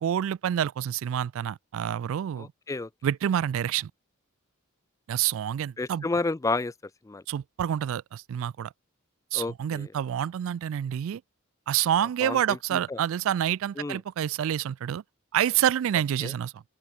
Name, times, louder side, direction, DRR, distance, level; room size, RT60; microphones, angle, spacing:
voice 1, 0.0-2.5 3.0-3.9 5.1-6.1 7.3-8.7 9.3-11.2 11.7-15.0 15.3-16.6, right 10 dB, 65° right, 0.3 m, -28 dB
voice 2, 2.4-2.9 5.8-6.7 7.0-7.2 9.3-9.9 12.2-13.0 13.8-14.0 16.2-16.3, left 3 dB, 15° left, 0.3 m, -31 dB
open air
head